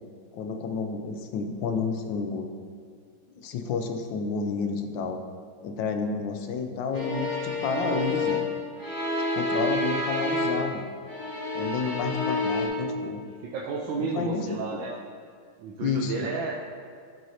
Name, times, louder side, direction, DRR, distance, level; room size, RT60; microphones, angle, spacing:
voice 1, 0.3-2.5 3.4-5.2 5.6-8.4 9.3-10.8 11.5-13.2 14.0-14.8 15.8-16.3, left 5 dB, 80° left, 5 dB, 1.4 m, -30 dB
sound 1, 6.9-10.8 11.1-12.7, left 2 dB, 10° left, 1.4 m, -29 dB
voice 2, 13.2-14.9 15.6-16.5, right 4 dB, 90° right, -2 dB, 1.4 m, -32 dB
12.0 x 6.2 x 2.8 m, 2.1 s
omnidirectional pair, 2.0 m